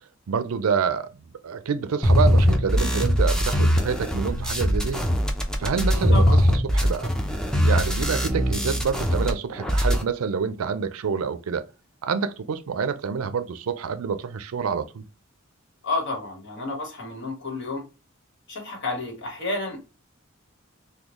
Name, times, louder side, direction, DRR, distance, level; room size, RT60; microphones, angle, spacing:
voice 1, 0.3-5.0 5.6-7.1 7.6-11.7 12.0-15.0, right 6 dB, 85° right, 0.4 m, -27 dB
sound 1, 2.0-9.3 9.6-10.0, equal, 5° left, 0.5 m, -21 dB
voice 2, 15.8-17.8 18.5-19.8, left 2 dB, 60° left, 1.4 m, -30 dB
3.6 x 2.3 x 3.0 m
head